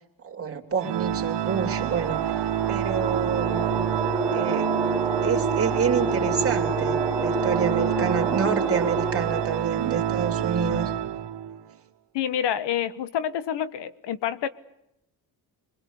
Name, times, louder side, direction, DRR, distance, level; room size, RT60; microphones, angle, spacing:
voice 1, 0.2-2.3 2.7-3.9 4.3-4.7 5.2-10.9, right 6 dB, 35° right, 3 dB, 3.5 m, -28 dB
Organ, 0.8-11.6, right 11 dB, 85° right, 1.6 m, -28 dB
sound 1, 1.3-9.7, right 2 dB, 5° right, 2.7 m, -29 dB
voice 2, 12.1-14.5, left 9 dB, 80° left, 16 dB, 1.4 m, -27 dB
26.0 x 23.5 x 8.4 m, 0.84 s
cardioid pair, 120°, 41 cm